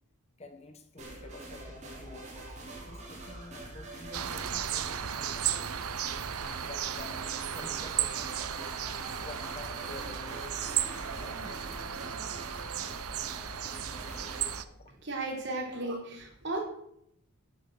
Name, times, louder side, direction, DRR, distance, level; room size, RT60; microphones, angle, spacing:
voice 1, 0.4-5.8 6.6-8.7 9.2-10.7 11.2-11.6 14.7-14.9, left 2 dB, 30° left, 8 dB, 1.1 m, -50 dB
sound 1, 1.0-14.5, right 1 dB, 30° right, 3.7 m, -45 dB
sound 2, 4.1-14.6, right 10 dB, 85° right, 0.8 m, -35 dB
sound 3, 7.5-12.5, right 2 dB, 15° right, 2.1 m, -49 dB
voice 2, 15.0-16.6, right 2 dB, 50° right, -1 dB, 3.8 m, -35 dB
11.0 x 9.1 x 6.6 m, 0.73 s
head